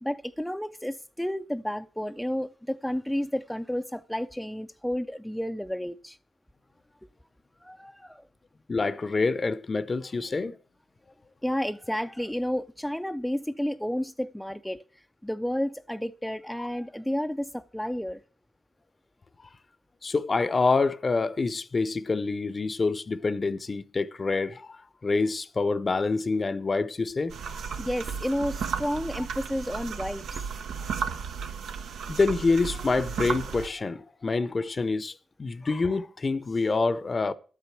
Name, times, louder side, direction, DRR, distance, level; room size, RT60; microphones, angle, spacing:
voice 1, 0.0-6.2 7.6-8.2 11.4-14.8 15.2-18.2 27.8-30.5, equal, 5° left, 0.4 m, -31 dB
voice 2, 8.7-10.6 16.6-16.7 20.0-27.7 32.1-37.3, left 3 dB, 40° left, 0.7 m, -27 dB
sound 1, 27.3-33.7, right 6 dB, 80° right, 0.8 m, -34 dB
12.0 x 8.3 x 4.5 m
supercardioid pair, 55°, 0 cm